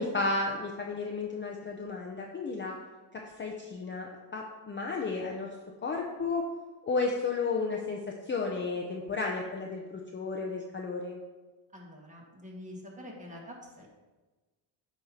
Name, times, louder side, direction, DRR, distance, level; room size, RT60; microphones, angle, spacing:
voice 1, 0.0-2.7 3.1-5.5 5.8-6.4 6.8-8.0 8.3-9.8 10.1-11.2, left 3 dB, 25° left, 0 dB, 0.6 m, -33 dB
voice 2, 11.7-13.9, left 1 dB, 15° right, -3 dB, 1.7 m, -46 dB
8.6 x 3.1 x 5.5 m, 1.2 s
cardioid pair, 125°, 47 cm